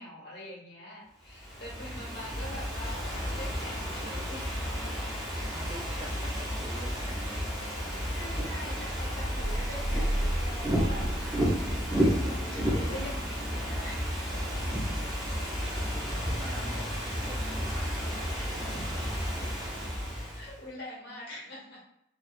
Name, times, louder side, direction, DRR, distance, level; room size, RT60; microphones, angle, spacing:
voice 1, 0.0-4.9 8.1-11.5 11.9-14.4 19.9-21.8, left 1 dB, 60° left, -5 dB, 1.2 m, -44 dB
Ocean / Fireworks, 1.3-20.6, equal, ahead, 0.9 m, -32 dB
voice 2, 1.7-2.6 5.5-7.7 14.5-15.2 15.9-16.9 17.2-19.9, equal, 20° right, -1 dB, 0.6 m, -47 dB
sound 1, 9.3-12.0, right 1 dB, 75° right, 1.0 m, -32 dB
3.5 x 3.0 x 2.3 m, 0.80 s
head